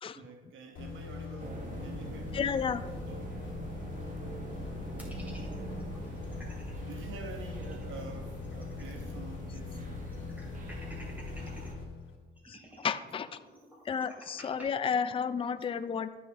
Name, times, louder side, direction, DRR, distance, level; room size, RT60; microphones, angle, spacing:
voice 1, 0.1-2.5 3.1-3.5 4.9-5.4 6.8-9.9 12.6-12.7, right 4 dB, 80° right, 4 dB, 1.2 m, -47 dB
sound 1, 0.7-12.5, left 6 dB, 75° left, 2.2 m, -43 dB
sound 2, 1.4-11.7, right 2 dB, 40° right, 1.4 m, -42 dB
voice 2, 2.3-2.8 12.5-13.3 13.9-16.2, left 6 dB, 25° left, 11 dB, 0.5 m, -32 dB
sound 3, 5.0-6.7 7.1-7.2 7.5-9.2 9.5-9.6 10.1-11.7 12.4-14.7, equal, 10° right, 2.7 m, -51 dB
13.5 x 6.3 x 3.0 m, 1.3 s
cardioid pair, 90°, 20 cm